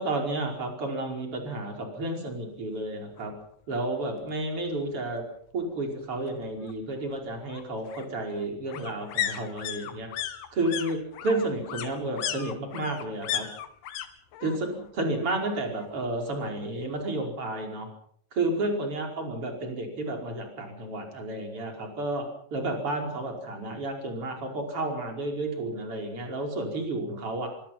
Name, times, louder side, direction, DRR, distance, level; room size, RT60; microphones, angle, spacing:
voice 1, 0.0-3.3 3.7-5.2 5.5-10.1 10.5-13.5 14.4-17.9 18.3-27.6, right 2 dB, 30° right, 2 dB, 5.7 m, -31 dB
sound 1, 3.2-3.3 3.6-3.7 4.0-5.0 6.3-14.1 14.3-14.9 15.2-16.2 16.5-16.6, left 11 dB, 70° left, 3.4 m, -36 dB
25.0 x 23.5 x 5.9 m, 0.66 s
omnidirectional pair, 5.2 m